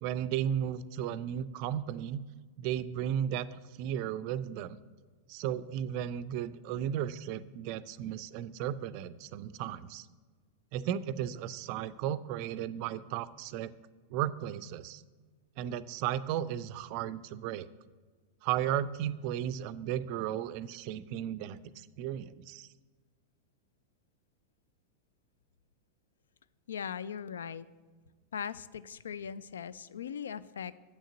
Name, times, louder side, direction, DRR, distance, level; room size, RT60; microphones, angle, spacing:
voice 1, 0.0-2.2 2.6-4.8 5.3-10.1 10.7-13.7 14.1-15.0 15.6-17.7 18.4-22.7, right 10 dB, 45° right, 15 dB, 0.4 m, -35 dB
voice 2, 26.7-27.7 28.3-30.7, left 7 dB, 65° left, 17 dB, 0.3 m, -39 dB
8.2 x 6.4 x 7.9 m, 1.4 s
figure-of-eight pair, 90°, 0 cm